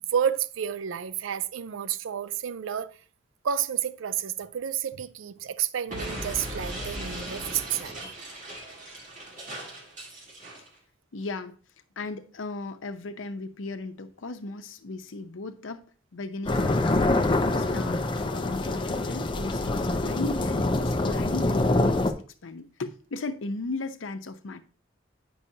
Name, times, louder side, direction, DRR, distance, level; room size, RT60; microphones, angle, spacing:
voice 1, 0.1-2.9 3.4-8.0, right 8 dB, 90° right, 0.4 m, -30 dB
Explosion, 5.9-10.7, right 1 dB, 40° right, 2.1 m, -38 dB
voice 2, 11.1-11.6 12.0-17.2 17.6-22.1 22.4-24.6, left 3 dB, 85° left, 0.7 m, -36 dB
sound 1, 16.5-22.1, left 2 dB, 25° left, 0.4 m, -25 dB
8.4 x 5.5 x 2.7 m
head